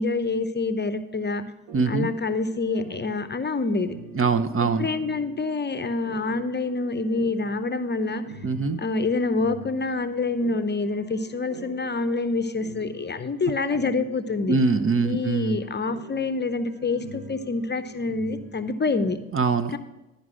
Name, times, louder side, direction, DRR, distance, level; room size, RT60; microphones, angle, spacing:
voice 1, 0.0-1.4 1.9-4.0 4.6-8.2 8.8-14.6 15.0-19.2 19.7-19.8, left 3 dB, 25° left, 11 dB, 0.7 m, -27 dB
voice 2, 1.7-2.1 4.1-4.9 8.4-8.8 14.5-15.6 19.3-19.8, right 4 dB, 35° right, 10 dB, 0.6 m, -23 dB
sound 1, 1.7-19.1, right 3 dB, 80° right, 1.2 m, -45 dB
11.0 x 5.2 x 6.2 m, 0.98 s
hypercardioid pair, 40°, 39 cm